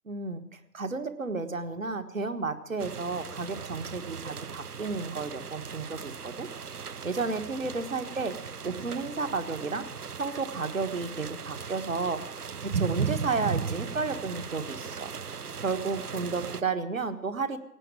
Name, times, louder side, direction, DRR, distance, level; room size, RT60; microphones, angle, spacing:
voice 1, 0.0-6.5 7.0-8.4 8.6-9.9 10.2-15.1 15.6-17.6, right 4 dB, 60° right, 9 dB, 1.6 m, -32 dB
sound 1, 2.8-16.6, right 6 dB, 80° right, 0.8 m, -37 dB
17.0 x 8.8 x 8.9 m, 0.84 s
figure-of-eight pair, 150°, 45 cm